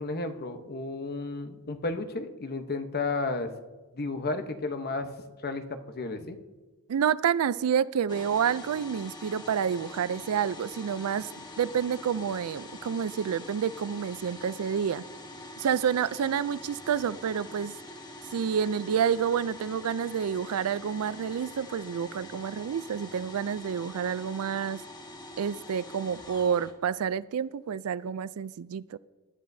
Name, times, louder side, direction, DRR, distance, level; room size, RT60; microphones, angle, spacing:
voice 1, 0.0-3.5 3.9-5.1 5.4-6.4, left 3 dB, 45° left, 7 dB, 0.9 m, -33 dB
voice 2, 6.9-11.3 11.6-15.0 15.6-17.8 18.3-24.8 25.4-29.0, right 7 dB, 75° right, 18 dB, 0.4 m, -29 dB
sound 1, 8.1-26.7, left 2 dB, 20° left, 1.2 m, -45 dB
19.5 x 11.5 x 2.7 m, 1.2 s
head